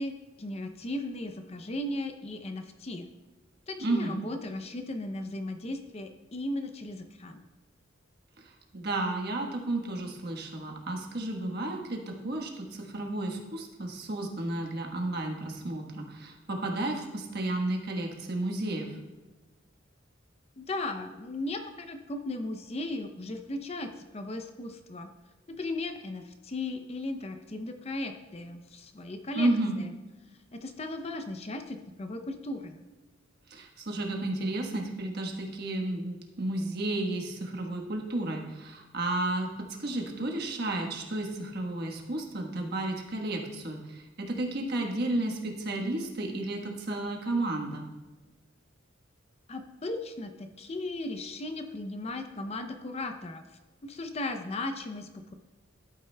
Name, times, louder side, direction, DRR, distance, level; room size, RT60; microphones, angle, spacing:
voice 1, 0.0-3.1 3.7-7.4 20.6-25.1 25.5-29.5 29.8-29.9 30.5-32.8 49.5-55.3, left 2 dB, 30° left, 7 dB, 0.5 m, -36 dB
voice 2, 3.8-4.2 8.4-18.9 29.3-29.7 33.5-39.5 39.8-47.8, right 2 dB, 55° right, 1 dB, 1.3 m, -32 dB
12.0 x 8.7 x 2.2 m, 1.2 s
head